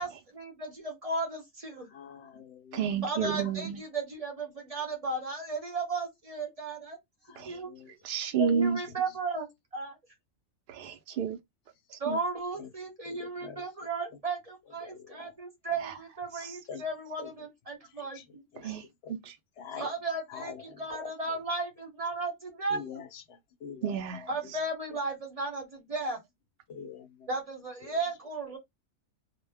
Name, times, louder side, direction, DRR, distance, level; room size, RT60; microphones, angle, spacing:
voice 1, 0.0-1.9 3.0-7.0 7.4-7.7 8.4-10.0 12.0-18.8 19.8-23.0 24.3-26.2 27.3-28.6, right 3 dB, 30° right, 0.8 m, -35 dB
voice 2, 1.9-3.1 3.3-3.5 7.2-7.9 8.8-9.0 12.6-12.7 13.0-13.7 14.8-15.3 16.7-16.8 17.2-17.3 17.8-18.3 18.5-18.7 19.0-19.2 19.6-19.9 20.3-21.4 22.7-24.5 26.7-27.3 27.8-28.0, left 6 dB, 65° left, 0.7 m, -45 dB
voice 3, 2.7-3.8 7.4-7.6 8.0-8.8 10.7-11.4 11.9-12.2 15.8-15.9 16.3-16.6 18.6-18.8 19.3-19.4 23.8-24.3, right 7 dB, 65° right, 0.5 m, -31 dB
2.2 x 2.1 x 3.3 m
omnidirectional pair, 1.4 m